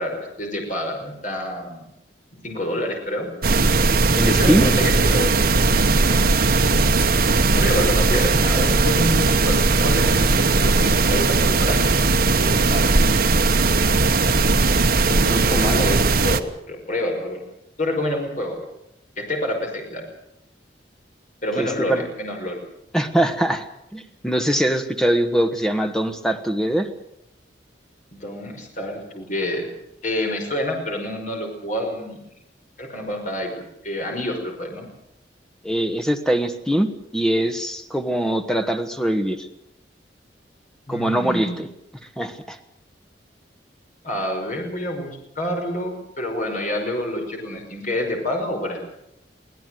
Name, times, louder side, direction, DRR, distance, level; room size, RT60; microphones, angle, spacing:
voice 1, 0.0-1.9 2.4-3.3 4.2-5.4 5.7-6.3 7.6-11.8 12.3-12.9 15.0-17.4 17.8-18.6 19.2-20.1 21.4-22.6 28.1-29.7 30.0-32.2 32.8-34.9 40.9-41.6 44.0-48.8, left 1 dB, 45° left, 2 dB, 5.5 m, -28 dB
sound 1, 3.4-16.4, right 3 dB, 55° right, 1.2 m, -18 dB
voice 2, 4.1-4.7 15.3-15.7 21.6-22.0 22.9-23.6 23.9-26.9 35.6-39.5 40.9-41.7 42.2-42.6, right 1 dB, 5° left, 7 dB, 1.5 m, -22 dB
23.5 x 17.0 x 7.8 m, 0.78 s
head